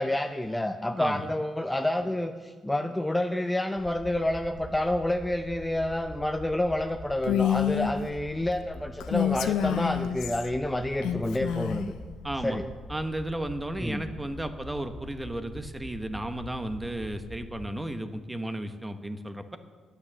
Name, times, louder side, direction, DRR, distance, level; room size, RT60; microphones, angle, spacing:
voice 1, 0.0-11.9 12.4-12.7 13.8-14.0, left 1 dB, 10° left, 6 dB, 0.6 m, -29 dB
sound 1, 3.8-17.7, left 1 dB, 55° left, 1.1 m, -44 dB
Female speech woman speaking, 7.2-7.9 9.0-10.5 11.0-11.9, left 9 dB, 90° left, 0.7 m, -27 dB
voice 2, 12.2-12.6 12.9-19.6, right 1 dB, 10° right, 8 dB, 1.0 m, -34 dB
10.0 x 9.4 x 7.4 m, 1.5 s
cardioid pair, 90°, 0 cm